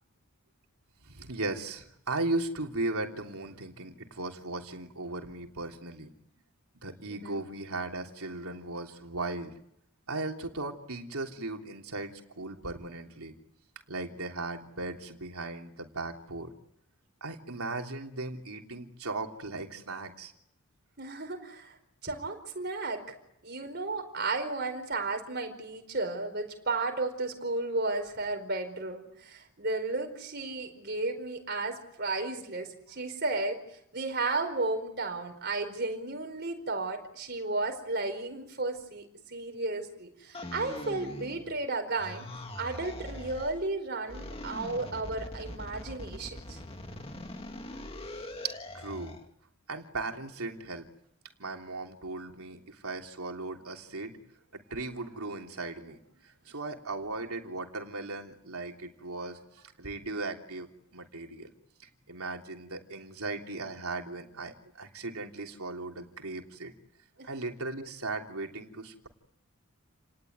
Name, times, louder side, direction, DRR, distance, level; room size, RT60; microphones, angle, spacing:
voice 1, 1.0-6.1 6.8-9.5 10.1-12.1 12.3-13.3 13.9-16.5 17.2-20.3 48.4-49.2 49.7-50.9 51.4-54.2 54.5-61.5 61.8-66.7 67.2-69.1, right 2 dB, 80° right, 3 dB, 3.3 m, -37 dB
voice 2, 7.1-7.4 21.0-21.8 22.0-23.1 23.4-42.3 42.5-46.6 67.2-67.3, right 3 dB, 45° right, 7 dB, 4.7 m, -33 dB
sound 1, 40.3-41.7 42.0-43.6 44.1-49.3, left 1 dB, 25° left, 2.0 m, -42 dB
30.0 x 19.5 x 9.4 m, 0.78 s
head